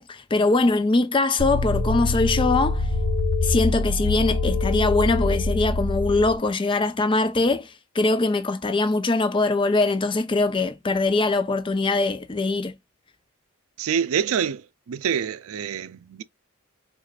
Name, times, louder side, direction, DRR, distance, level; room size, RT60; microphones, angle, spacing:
voice 1, 0.0-2.9 3.4-12.7, left 3 dB, 25° left, 0.4 m, -22 dB
sound 1, 1.4-6.4, left 2 dB, 60° left, 1.3 m, -24 dB
voice 2, 13.8-16.2, right 7 dB, 90° right, 0.4 m, -26 dB
4.8 x 2.4 x 2.3 m
head